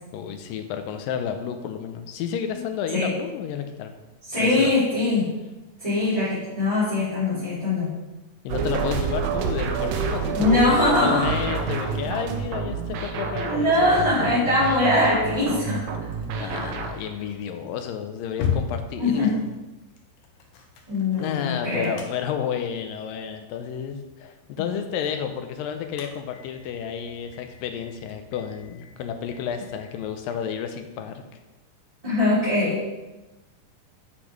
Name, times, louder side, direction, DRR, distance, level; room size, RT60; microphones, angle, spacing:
voice 1, 0.1-4.0 4.4-4.7 8.4-14.4 16.4-19.5 21.2-31.2, left 8 dB, 85° left, 7 dB, 2.5 m, -31 dB
voice 2, 4.3-5.3 5.8-7.9 10.3-11.3 13.3-15.8 16.3-16.7 19.0-19.4 20.9-21.9 24.5-24.6 32.0-33.0, left 2 dB, 10° right, -13 dB, 3.1 m, -22 dB
sound 1, 8.5-17.1, right 5 dB, 75° right, 1.5 m, -29 dB
sound 2, 15.7-30.3, left 7 dB, 70° left, 2.4 m, -39 dB
8.3 x 6.0 x 5.2 m, 1.1 s
omnidirectional pair, 3.9 m